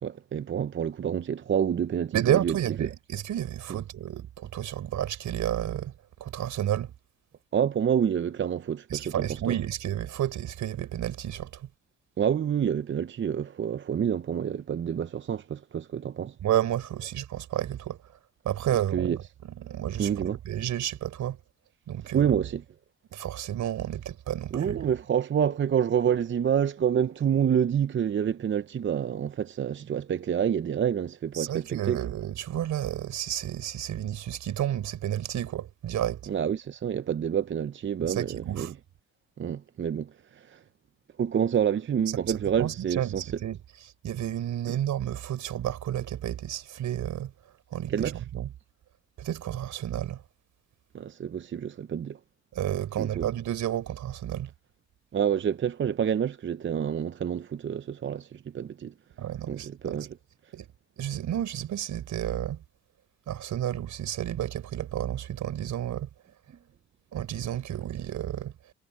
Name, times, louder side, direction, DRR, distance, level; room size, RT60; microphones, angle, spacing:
voice 1, 0.0-2.9 3.7-3.8 7.5-9.6 12.2-16.4 18.9-19.2 20.0-20.4 22.1-22.6 24.5-32.0 36.3-38.7 39.4-40.6 41.2-43.3 47.9-48.2 50.9-52.2 53.0-53.3 55.1-58.9 59.5-60.2, right 8 dB, 40° right, 0.7 m, -28 dB
voice 2, 2.1-5.9 6.2-6.9 8.9-11.7 16.4-18.0 18.4-19.1 19.6-20.1 20.4-21.4 21.9-22.4 23.1-24.9 31.3-36.3 38.1-38.7 42.3-43.6 44.0-47.3 47.7-48.5 49.2-50.2 52.5-54.5 59.2-60.1 60.5-60.7 61.0-62.6 63.3-66.1 67.1-68.5, right 11 dB, 70° right, 4.9 m, -31 dB
cardioid pair, 90°, 30 cm